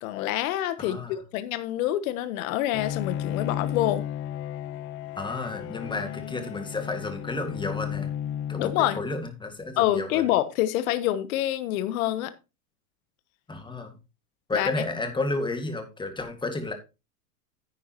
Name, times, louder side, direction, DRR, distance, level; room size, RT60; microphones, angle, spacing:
voice 1, 0.0-4.0 8.6-9.0 9.8-12.3 14.5-14.7, left 13 dB, 65° left, 1.2 m, -26 dB
voice 2, 0.8-1.1 5.2-8.1 8.5-10.2 13.5-14.0 14.5-16.7, left 2 dB, 10° left, 2.0 m, -32 dB
Bowed string instrument, 2.7-9.4, left 10 dB, 30° left, 0.5 m, -34 dB
10.0 x 9.5 x 3.0 m
hypercardioid pair, 115°, 45 cm